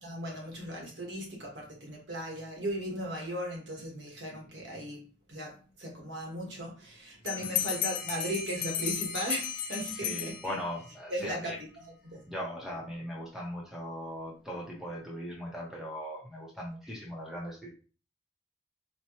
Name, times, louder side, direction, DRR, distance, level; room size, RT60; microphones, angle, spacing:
voice 1, 0.0-5.0 5.3-10.5 11.1-12.2, right 1 dB, 65° right, -1 dB, 1.3 m, -37 dB
Bell, 7.3-10.9, left 9 dB, 45° left, 0.6 m, -34 dB
voice 2, 9.9-11.6 12.3-17.7, equal, ahead, -4 dB, 0.8 m, -39 dB
4.2 x 2.2 x 3.0 m, 0.36 s
head